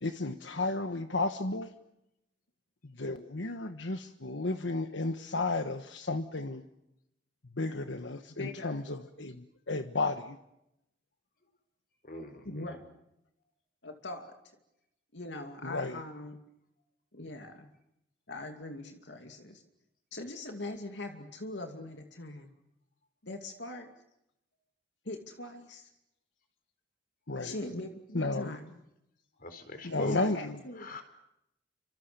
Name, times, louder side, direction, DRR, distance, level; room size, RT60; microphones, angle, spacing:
voice 1, 0.0-1.7 2.8-6.6 7.5-10.4 15.6-16.0 27.3-27.6 28.1-28.6 29.8-30.6, left 2 dB, 85° left, 8 dB, 1.4 m, -33 dB
voice 2, 8.4-8.8 12.4-12.8 13.8-14.3 15.1-16.4 17.1-17.7 18.3-19.6 20.1-22.5 23.2-23.9 25.0-25.9 27.4-28.7 30.0-30.9, left 2 dB, 70° left, 5 dB, 2.6 m, -41 dB
voice 3, 12.0-12.8 29.4-30.2 30.8-31.0, left 1 dB, 50° left, 9 dB, 4.4 m, -40 dB
30.0 x 26.0 x 6.9 m, 0.83 s
head